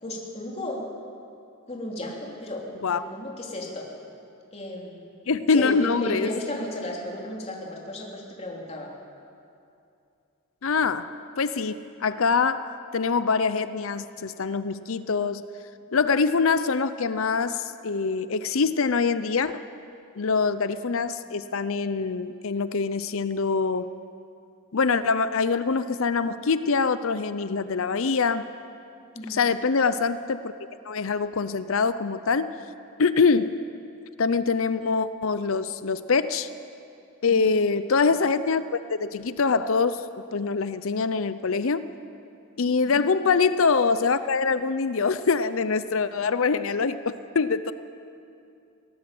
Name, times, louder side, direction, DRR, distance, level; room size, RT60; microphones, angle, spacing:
voice 1, 0.0-0.9 1.7-3.9 4.5-5.0 5.5-8.9 29.1-29.4 37.3-37.5 42.9-43.0, left 1 dB, 30° left, -2 dB, 3.4 m, -34 dB
voice 2, 5.3-6.3 10.6-15.4 15.9-19.6 20.2-23.9 24.7-28.5 29.3-30.5 30.8-32.6 33.0-33.6 34.2-36.5 37.2-40.0 40.3-41.9 42.6-47.7, left 4 dB, 65° left, 13 dB, 0.6 m, -24 dB
20.0 x 18.5 x 7.7 m, 2.6 s
head